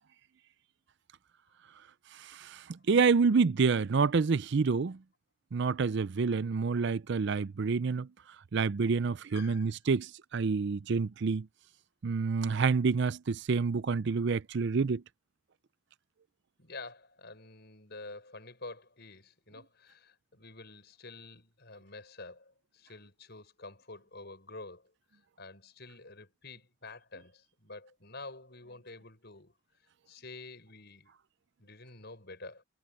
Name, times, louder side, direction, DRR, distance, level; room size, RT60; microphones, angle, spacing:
voice 1, 2.2-5.0 5.5-8.1 8.5-11.5 12.0-15.0, right 4 dB, 55° right, 0.5 m, -28 dB
voice 2, 9.3-9.7 16.6-24.9 25.4-29.5 30.1-31.1 31.6-32.6, left 3 dB, 50° left, 6.2 m, -48 dB
head